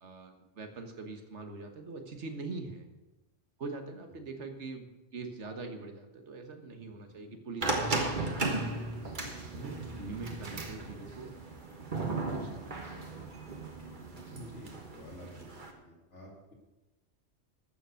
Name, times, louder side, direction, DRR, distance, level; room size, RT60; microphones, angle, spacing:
voice 1, 0.0-2.9 3.6-8.7 9.5-11.3 12.0-13.3, right 3 dB, 75° right, 5 dB, 1.7 m, -43 dB
sound 1, 7.6-15.7, right 3 dB, 45° right, 1.5 m, -36 dB
voice 2, 9.7-10.0 14.3-15.5 15.8-16.5, left 1 dB, 85° left, -1 dB, 2.4 m, -49 dB
13.5 x 7.0 x 6.4 m, 1.1 s
omnidirectional pair, 1.2 m